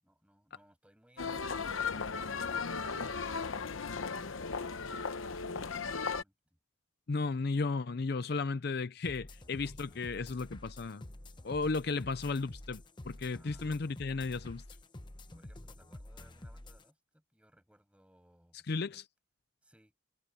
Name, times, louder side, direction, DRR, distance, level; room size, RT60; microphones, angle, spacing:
voice 1, 0.0-3.2 3.7-6.6 8.2-8.3 13.3-14.0 15.3-19.0 19.6-19.9, equal, 5° right, 7.4 m, -65 dB
sound 1, 1.2-6.2, left 5 dB, 90° left, 0.9 m, -36 dB
voice 2, 7.1-11.0 11.4-14.6 18.7-19.0, left 4 dB, 55° left, 0.5 m, -34 dB
sound 2, 9.0-16.8, left 1 dB, 25° left, 1.0 m, -49 dB
head